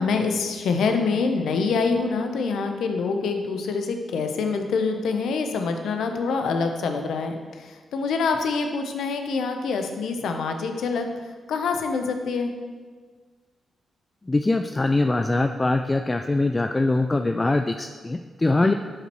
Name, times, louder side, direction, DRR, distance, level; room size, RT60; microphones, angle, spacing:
voice 1, 0.0-11.1 11.5-12.5 18.6-18.7, left 4 dB, 75° left, 5 dB, 0.7 m, -25 dB
voice 2, 14.3-18.7, left 2 dB, 25° left, 7 dB, 0.4 m, -22 dB
11.0 x 5.4 x 3.0 m, 1.5 s
supercardioid pair, 45°, 0 cm